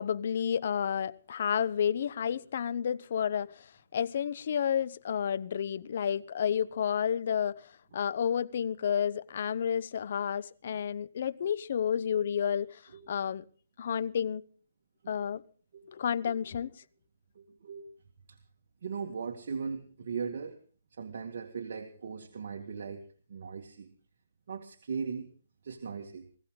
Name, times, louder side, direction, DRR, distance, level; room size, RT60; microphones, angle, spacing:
voice 1, 0.0-3.5 3.9-7.6 7.9-12.8 13.1-13.4 13.8-14.4 15.1-15.4 15.9-16.7, left 8 dB, 55° left, 0.9 m, -30 dB
voice 2, 17.4-17.8 18.3-18.4 18.8-20.6 20.9-23.9 24.5-25.3 25.6-26.3, right 6 dB, 60° right, 2.0 m, -39 dB
20.5 x 15.5 x 3.8 m
hypercardioid pair, 155°, 0 cm